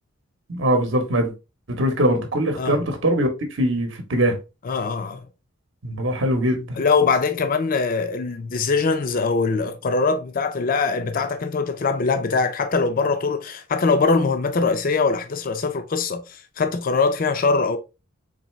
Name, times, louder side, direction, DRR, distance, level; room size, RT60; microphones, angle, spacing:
voice 1, 0.5-1.3 1.8-3.3 3.6-4.4 5.8-6.8, right 1 dB, 60° right, 0.9 m, -21 dB
voice 2, 4.6-5.3 6.8-17.8, left 4 dB, 45° left, 0.5 m, -22 dB
4.0 x 3.2 x 3.0 m
head